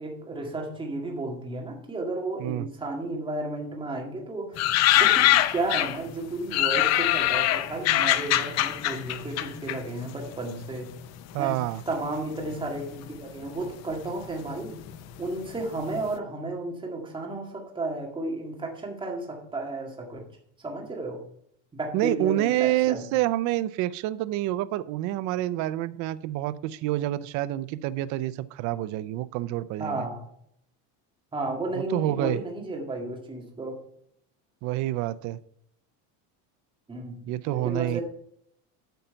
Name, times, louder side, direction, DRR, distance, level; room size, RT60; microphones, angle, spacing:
voice 1, 0.0-10.9 11.4-11.5 11.9-14.8 15.2-20.2 20.6-21.2 21.7-23.0 29.8-30.2 31.3-33.8 36.9-37.2 37.5-38.0, right 2 dB, 10° right, 1 dB, 1.9 m, -33 dB
sound 1, 4.6-6.1 6.5-10.4 10.6-11.5 12.2-12.7 13.0-13.1 13.3-15.6 15.9-16.0, left 14 dB, 40° left, 0.6 m, -23 dB
voice 2, 11.3-11.8 21.9-30.1 31.8-32.4 34.6-35.4 37.3-38.0, right 15 dB, 50° right, 15 dB, 0.5 m, -27 dB
9.2 x 5.6 x 5.7 m, 0.69 s
cardioid pair, 155°, 40 cm